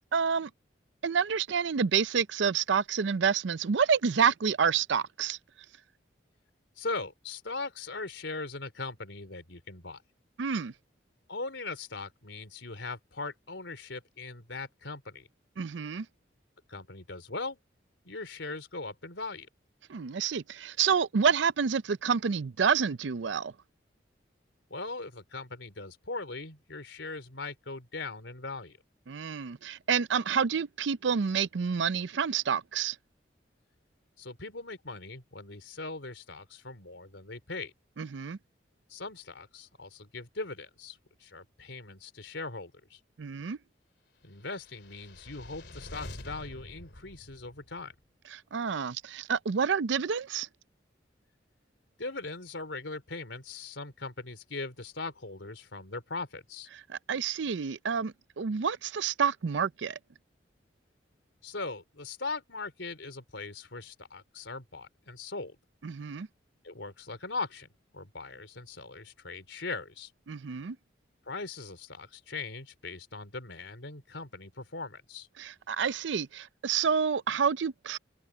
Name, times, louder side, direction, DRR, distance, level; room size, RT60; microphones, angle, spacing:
voice 1, 0.1-0.5 1.0-5.4 10.4-10.7 15.6-16.1 19.9-23.5 29.1-33.0 38.0-38.4 43.2-43.6 48.3-50.5 56.9-60.0 65.8-66.3 70.3-70.8 75.4-78.0, right 6 dB, 80° right, 0.5 m, -28 dB
voice 2, 6.8-10.0 11.3-15.3 16.7-17.6 18.0-19.5 24.7-28.8 34.2-37.7 38.9-43.0 44.2-48.0 52.0-56.7 61.4-65.6 66.6-67.7 67.9-70.1 71.3-75.3, left 3 dB, 85° left, 3.6 m, -40 dB
sound 1, 44.5-47.9, left 1 dB, 65° left, 3.0 m, -46 dB
head